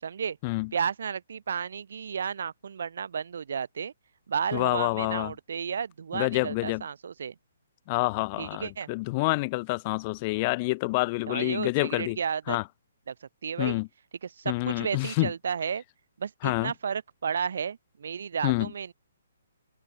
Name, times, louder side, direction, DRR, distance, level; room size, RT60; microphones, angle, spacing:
voice 1, 0.0-0.4 0.7-3.9 4.3-7.3 8.4-8.9 11.3-12.6 13.1-13.8 14.2-15.8 16.2-18.9, right 7 dB, 60° right, 4.3 m, -33 dB
voice 2, 4.5-5.3 6.1-6.8 7.9-12.2 12.5-12.6 13.6-13.9 14.5-15.3 16.4-16.7 18.4-18.7, left 25 dB, 25° left, 4.6 m, -27 dB
hypercardioid pair, 170°, 0 cm